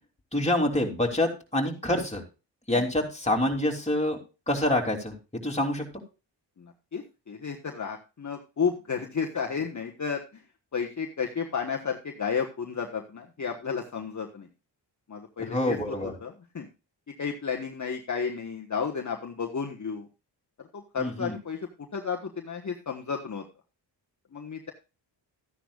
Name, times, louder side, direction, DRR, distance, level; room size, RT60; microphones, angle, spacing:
voice 1, 0.3-2.2 2.7-4.2 4.5-5.8 15.4-16.1 21.0-21.3, left 1 dB, 15° left, 0 dB, 3.1 m, -26 dB
voice 2, 6.6-10.4 10.7-14.5 15.1-16.7 17.2-20.1 20.6-23.4 24.3-24.7, left 6 dB, 40° left, 2 dB, 1.3 m, -32 dB
13.5 x 10.0 x 2.4 m, 0.30 s
cardioid pair, 75°, 44 cm